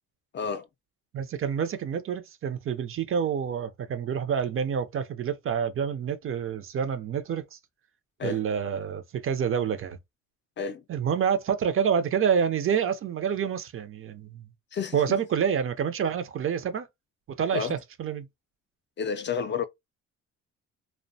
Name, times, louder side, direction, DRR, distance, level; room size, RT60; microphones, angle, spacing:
voice 1, 0.3-0.7 8.2-8.4 10.6-10.8 14.7-15.0 17.5-17.7 19.0-19.6, left 6 dB, 40° left, 0.4 m, -30 dB
voice 2, 1.1-7.6 8.2-10.0 10.9-14.4 14.9-16.9 17.4-18.3, right 7 dB, 45° right, 0.5 m, -28 dB
2.5 x 2.1 x 2.6 m
cardioid pair, 90°, 30 cm